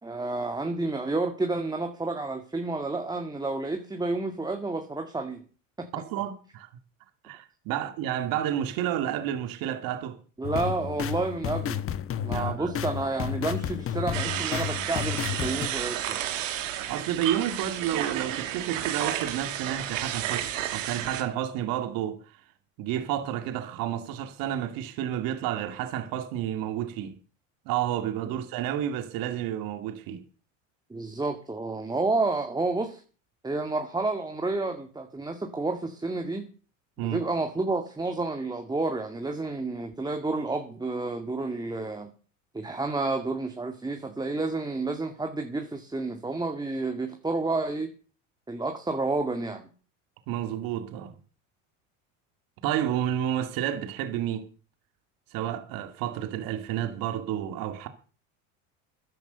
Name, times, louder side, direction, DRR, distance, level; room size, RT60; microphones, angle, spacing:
voice 1, 0.0-5.4 5.8-5.9 10.4-11.8 12.2-16.2 30.9-33.0 33.4-36.5 37.0-42.1 42.5-47.9 48.5-49.7, right 3 dB, 10° right, 1.9 m, -30 dB
voice 2, 5.9-6.7 7.2-10.2 12.3-12.7 16.9-22.4 22.8-27.2 27.7-30.2 37.0-37.2 50.3-51.1 52.6-54.5 55.3-57.9, right 11 dB, 60° right, 2.3 m, -30 dB
sound 1, 10.4-15.7, left 9 dB, 35° left, 1.3 m, -32 dB
sound 2, 14.1-21.2, right 11 dB, 90° right, 2.7 m, -32 dB
13.5 x 10.5 x 6.8 m
supercardioid pair, 105°, 38 cm